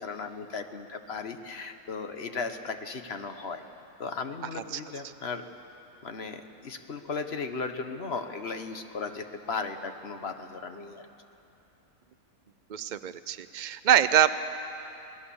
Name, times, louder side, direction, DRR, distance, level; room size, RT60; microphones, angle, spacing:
voice 1, 0.0-3.6 4.0-5.4 6.0-11.0, left 4 dB, 45° left, 7 dB, 1.3 m, -36 dB
voice 2, 12.7-14.3, right 10 dB, 80° right, 12 dB, 0.4 m, -24 dB
27.0 x 18.5 x 7.1 m, 2.9 s
omnidirectional pair, 1.5 m